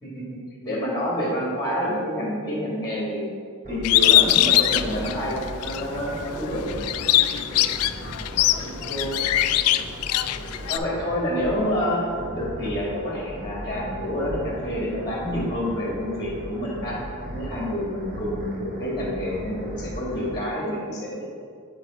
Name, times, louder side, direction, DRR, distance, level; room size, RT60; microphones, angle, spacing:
voice 1, 0.0-3.3 3.7-6.7 8.6-9.2 10.7-12.1 12.3-17.0 17.3-21.2, equal, 20° left, -5 dB, 1.9 m, -28 dB
sound 1, 3.6-20.4, equal, 40° right, 0.9 m, -37 dB
Bird, 3.8-5.8 6.3-10.8, left 14 dB, 80° left, 0.3 m, -21 dB
8.9 x 4.6 x 4.1 m, 2.2 s
head